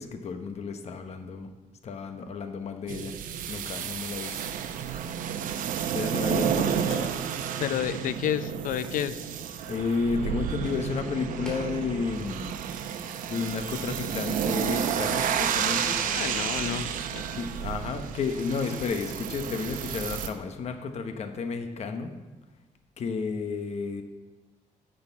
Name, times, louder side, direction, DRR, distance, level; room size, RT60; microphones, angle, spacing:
voice 1, 0.0-1.5 1.8-3.2 3.5-4.4 5.9-6.9 9.7-12.6 13.3-16.0 17.3-22.2 23.0-24.0, left 4 dB, 50° left, 7 dB, 1.0 m, -32 dB
sound 1, 2.9-20.3, right 8 dB, 80° right, 0.7 m, -31 dB
sound 2, 5.2-22.8, equal, 5° left, 2.9 m, -52 dB
voice 2, 7.6-9.2 16.1-17.3, left 10 dB, 75° left, 13 dB, 0.5 m, -30 dB
10.5 x 6.6 x 4.6 m, 1.2 s
cardioid pair, 120°, 14 cm